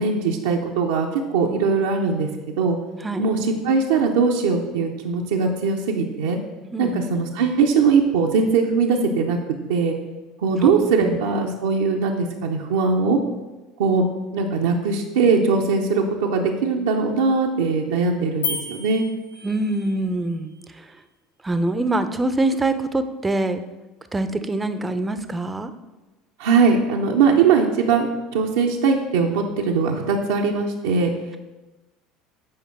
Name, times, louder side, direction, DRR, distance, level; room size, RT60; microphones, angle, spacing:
voice 1, 0.0-2.3 2.6-2.8 3.2-3.4 3.6-6.4 6.8-9.4 9.7-9.9 10.4-13.2 13.8-14.1 14.3-19.0 26.4-31.1, right 5 dB, 70° right, 0 dB, 0.7 m, -20 dB
voice 2, 6.7-7.1 10.6-10.7 11.0-11.2 19.4-20.9 21.4-23.6 24.1-25.7, right 2 dB, 15° right, 10 dB, 0.6 m, -24 dB
sound 1, 18.4-20.0, left 5 dB, 85° left, 0.9 m, -31 dB
8.6 x 5.1 x 4.5 m, 1.1 s
figure-of-eight pair, 70°, 0 cm